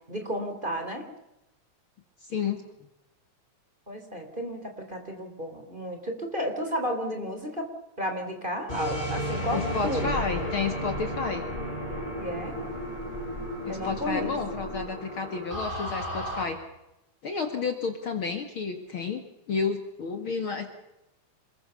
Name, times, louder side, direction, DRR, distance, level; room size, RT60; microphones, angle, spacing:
voice 1, 0.1-1.0 3.9-7.7 8.0-10.4 12.2-12.5 13.7-14.3, equal, 15° right, 4 dB, 3.2 m, -32 dB
voice 2, 2.3-2.6 9.5-11.4 13.7-16.6 17.2-20.7, left 5 dB, 45° left, 6 dB, 2.4 m, -31 dB
sound 1, 8.7-16.4, equal, 15° left, 7.2 m, -33 dB
27.5 x 21.5 x 6.9 m, 0.92 s
omnidirectional pair, 3.5 m